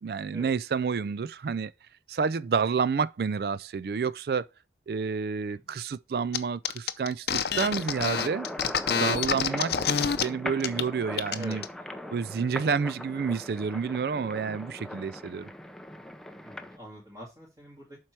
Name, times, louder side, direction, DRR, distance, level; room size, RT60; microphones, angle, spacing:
voice 1, 0.0-1.7 2.1-4.5 4.9-8.5 8.9-9.7 10.0-11.6 12.1-15.5, right 5 dB, 60° right, 0.3 m, -29 dB
sound 1, 6.3-6.4 6.6-10.2 10.6-10.8 11.1-11.7, left 7 dB, 65° left, 0.6 m, -27 dB
sound 2, 7.6-16.8, left 1 dB, 5° left, 0.5 m, -39 dB
voice 2, 16.4-18.0, equal, 20° right, 2.2 m, -44 dB
7.5 x 4.7 x 4.5 m
head